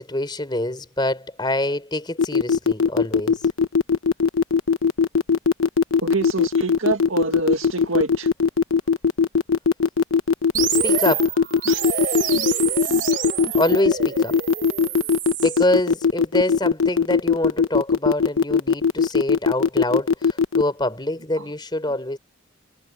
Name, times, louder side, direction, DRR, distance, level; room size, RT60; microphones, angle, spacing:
voice 1, 0.0-3.4 10.7-11.3 13.5-14.4 15.4-22.2, left 1 dB, 20° left, 3.8 m, -25 dB
sound 1, 2.2-20.6, left 5 dB, 75° left, 1.1 m, -19 dB
voice 2, 6.0-8.3 11.7-11.8 21.4-21.5, right 3 dB, 75° right, 1.9 m, -26 dB
sound 2, 10.5-15.6, right 9 dB, 40° right, 4.4 m, -27 dB
head